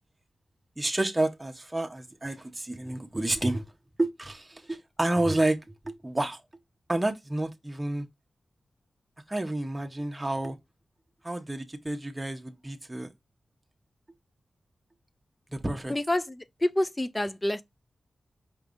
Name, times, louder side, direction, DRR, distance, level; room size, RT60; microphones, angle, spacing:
voice 1, 0.8-3.6 4.0-5.6 5.8-6.4 6.9-8.1 9.3-10.6 11.2-13.1 15.5-15.9, right 1 dB, 20° right, 0.8 m, -29 dB
voice 2, 15.9-17.6, left 1 dB, 25° left, 0.5 m, -28 dB
5.0 x 3.2 x 2.6 m
cardioid pair, 40°, 0 cm